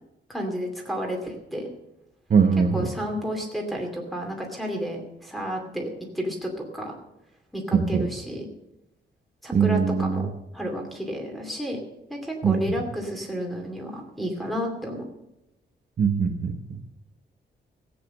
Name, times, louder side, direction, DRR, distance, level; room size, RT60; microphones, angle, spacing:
voice 1, 0.3-1.7 2.7-7.0 7.5-8.5 9.4-10.2 10.5-11.8 12.1-15.1, equal, ahead, 2 dB, 2.5 m, -31 dB
voice 2, 2.3-2.9 7.7-8.1 9.5-10.2 12.4-12.6 16.0-16.6, right 6 dB, 40° right, 3 dB, 1.1 m, -21 dB
16.0 x 8.5 x 6.7 m, 0.88 s
wide cardioid pair, 180°, 20 cm